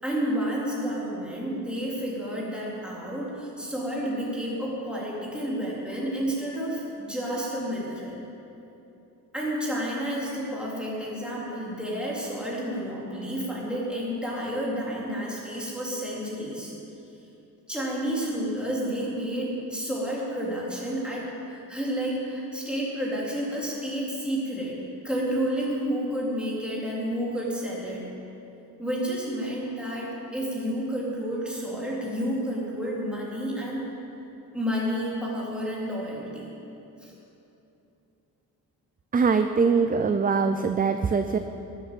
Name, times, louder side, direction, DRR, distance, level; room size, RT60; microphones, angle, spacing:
voice 1, 0.0-8.2 9.3-16.7 17.7-24.8 25.0-28.1 28.8-33.8 34.5-36.5 37.0-37.1, equal, 5° right, -6 dB, 3.4 m, -30 dB
voice 2, 39.1-41.4, right 5 dB, 25° right, 8 dB, 0.4 m, -22 dB
18.5 x 8.0 x 7.6 m, 2.9 s
wide cardioid pair, 145°, 37 cm